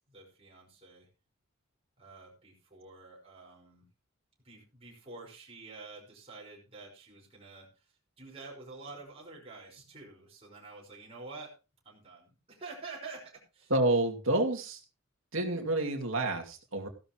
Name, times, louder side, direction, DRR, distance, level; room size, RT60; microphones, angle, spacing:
voice 1, 0.1-1.1 2.0-3.9 4.4-7.7 8.2-11.5 11.8-13.7, right 3 dB, 30° right, -3 dB, 5.3 m, -48 dB
voice 2, 13.7-14.8 15.3-16.9, right 2 dB, 65° right, 2 dB, 2.6 m, -29 dB
15.5 x 12.0 x 3.1 m, 0.31 s
head